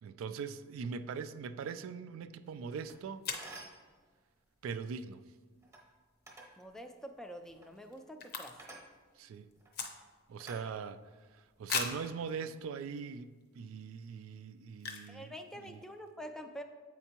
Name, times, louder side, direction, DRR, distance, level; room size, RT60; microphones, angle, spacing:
voice 1, 0.0-3.2 4.6-5.2 9.2-9.5 10.3-11.0 11.3-15.8, right 5 dB, 85° right, 13 dB, 0.3 m, -41 dB
sound 1, 2.6-2.7 3.2-3.6 6.5-6.8 7.1-7.2 7.4-8.9 9.1-10.4 10.8-10.9 11.7-12.1 12.8-12.9 13.4-13.6 14.8-15.2 15.5-15.6 15.7-16.1, left 5 dB, 50° left, 0.6 m, -39 dB
sound 2, 2.8-3.0 3.3-3.9 5.6-5.8 6.3-6.6 7.5-7.7 8.6-8.9 9.6-9.8 10.4-11.2 11.7-12.0, right 2 dB, 15° right, 0.8 m, -51 dB
voice 2, 6.6-8.5 15.1-16.6, equal, 5° left, 6 dB, 0.3 m, -46 dB
8.1 x 4.4 x 2.9 m, 1.4 s
head